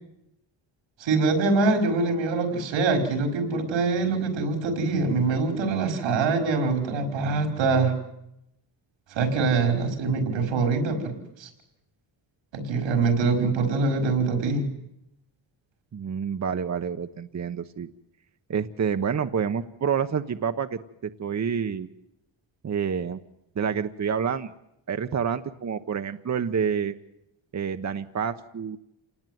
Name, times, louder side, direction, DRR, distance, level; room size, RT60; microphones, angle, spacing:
voice 1, 1.0-7.9 9.1-11.5 12.5-14.7, right 4 dB, 85° right, 6 dB, 5.3 m, -24 dB
voice 2, 15.9-17.9 18.5-21.9 22.6-23.2 23.5-24.5 24.9-26.9 27.5-28.8, right 7 dB, 40° right, 8 dB, 1.0 m, -28 dB
28.0 x 19.0 x 9.3 m, 0.84 s
cardioid pair, 110°, 44 cm